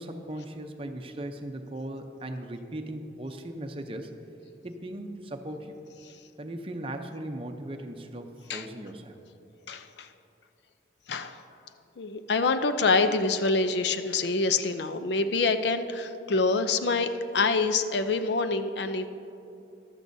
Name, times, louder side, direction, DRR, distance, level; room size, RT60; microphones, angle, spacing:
voice 1, 0.0-4.1 4.6-5.8 6.4-9.2, right 1 dB, 30° right, 5 dB, 0.6 m, -38 dB
voice 2, 9.7-10.1 11.1-11.4 12.0-19.1, left 3 dB, 70° left, 10 dB, 0.5 m, -26 dB
14.5 x 12.0 x 2.7 m, 2.7 s
head